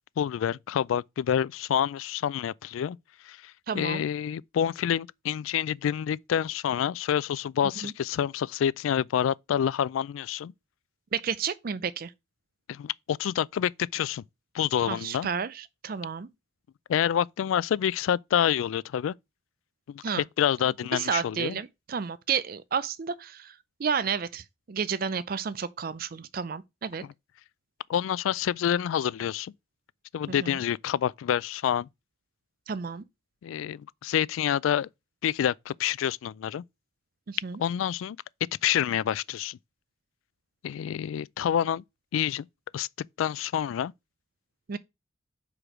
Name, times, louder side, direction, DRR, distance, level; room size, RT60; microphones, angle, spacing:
voice 1, 0.2-3.0 3.2-10.5 12.7-14.2 14.5-15.3 16.9-19.1 19.9-20.0 20.4-21.6 27.9-29.5 30.1-31.9 33.4-34.9 35.2-36.6 37.6-38.2 38.6-39.6 40.6-41.8 42.1-42.5 42.7-42.9 43.2-43.9, left 9 dB, 90° left, 0.3 m, -27 dB
voice 2, 3.7-4.0 7.8-7.9 11.1-12.1 14.9-16.3 20.0-20.2 20.9-27.0 30.3-30.6 32.7-33.0 37.3-37.6 44.7-44.8, right 6 dB, 50° right, 0.4 m, -31 dB
6.0 x 5.0 x 4.8 m
head